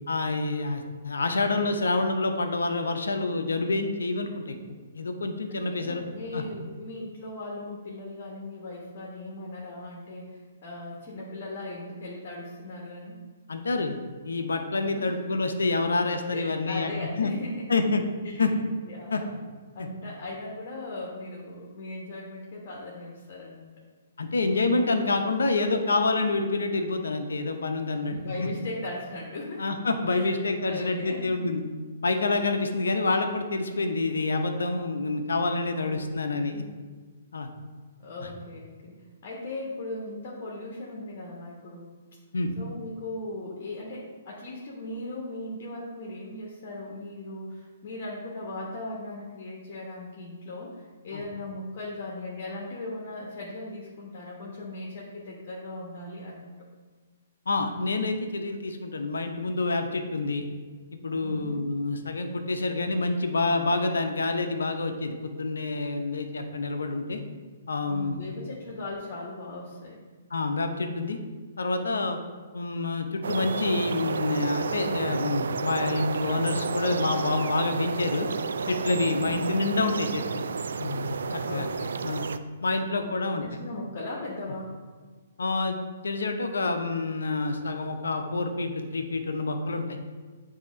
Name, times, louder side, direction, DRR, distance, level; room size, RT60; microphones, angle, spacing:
voice 1, 0.1-4.6 4.9-6.0 6.3-6.4 13.5-14.0 14.2-16.9 17.2-17.3 17.7-18.0 18.4-18.5 19.1-19.2 19.8-19.9 24.2-28.5 29.6-31.6 32.0-36.6 37.3-37.5 42.3-42.5 51.1-51.2 57.5-60.5 61.0-67.2 67.7-68.2 70.3-71.2 71.6-72.2 72.5-78.3 78.6-80.4 80.8-81.7 82.0-82.2 82.6-83.4 85.4-90.0, left 3 dB, 75° left, 6 dB, 0.7 m, -27 dB
voice 2, 5.5-13.2 14.9-15.1 16.3-17.7 18.2-18.4 18.9-19.4 19.7-23.8 28.0-29.6 30.1-31.4 35.8-36.1 38.0-41.9 42.6-56.5 61.2-61.6 67.9-70.1 79.2-79.4 81.4-82.0 82.8-84.7, left 2 dB, 45° left, -2 dB, 1.2 m, -38 dB
sound 1, 73.2-82.4, right 5 dB, 70° right, 0.3 m, -31 dB
8.3 x 2.8 x 5.1 m, 1.4 s
figure-of-eight pair, 125°, 0 cm